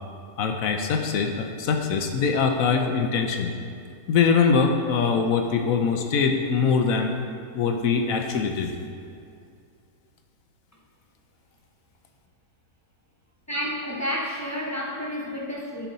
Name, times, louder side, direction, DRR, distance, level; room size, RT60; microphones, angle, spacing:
voice 1, 0.4-3.5 4.1-7.2 7.5-8.7, left 5 dB, 70° left, 4 dB, 1.0 m, -23 dB
voice 2, 13.5-15.9, equal, 20° left, -3 dB, 0.4 m, -30 dB
11.0 x 4.7 x 4.0 m, 2.4 s
omnidirectional pair, 1.6 m